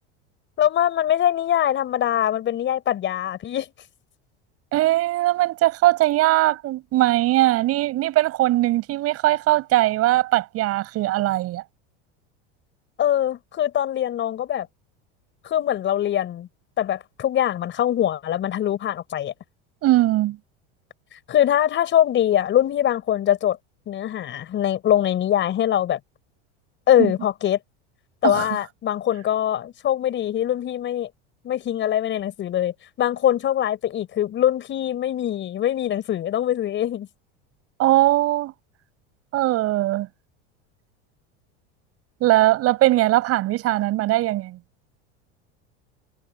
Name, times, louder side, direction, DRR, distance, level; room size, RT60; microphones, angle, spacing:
voice 1, 0.6-3.7 13.0-14.7 15.4-16.5 16.8-19.3 21.3-23.6 23.9-26.0 26.9-27.6 28.2-31.1 31.4-37.1, left 11 dB, 40° left, 5.1 m, -22 dB
voice 2, 4.7-11.6 19.8-20.4 27.0-27.1 28.2-28.5 37.8-38.5 39.3-40.1 42.2-44.6, right 16 dB, 50° right, 7.1 m, -20 dB
supercardioid pair, 125°, 31 cm